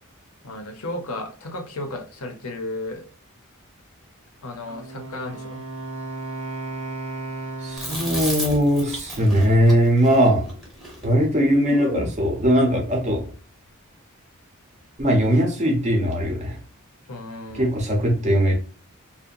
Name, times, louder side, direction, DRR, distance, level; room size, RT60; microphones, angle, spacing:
voice 1, 0.4-3.1 4.4-5.6 17.1-17.7, left 2 dB, 85° left, 4 dB, 0.7 m, -34 dB
Wind instrument woodwind instrument, 4.7-8.5, right 2 dB, 85° right, 0.8 m, -34 dB
voice 2, 7.6-10.5 11.0-13.3 15.0-16.6 17.5-18.6, equal, 30° right, 1 dB, 0.8 m, -20 dB
Chewing mastication, 7.8-12.2, equal, ahead, 1.0 m, -33 dB
2.7 x 2.1 x 2.4 m, 0.40 s
head